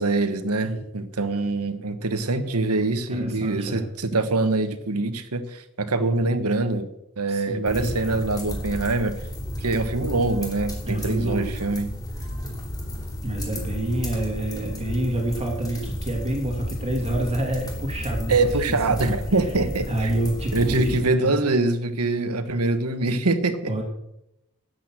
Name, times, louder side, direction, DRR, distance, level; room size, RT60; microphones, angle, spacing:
voice 1, 0.0-6.9 7.2-9.1 9.6-11.9 18.3-20.1 20.5-23.7, right 2 dB, 85° right, 11 dB, 1.3 m, -24 dB
voice 2, 3.1-3.9 7.3-7.9 10.8-11.5 13.2-18.3 18.7-19.2 19.9-21.4 23.7-23.8, right 1 dB, 30° right, 1 dB, 2.6 m, -27 dB
sound 1, 7.6-21.0, left 1 dB, 15° left, 2.9 m, -33 dB
12.5 x 8.1 x 7.7 m, 0.84 s
head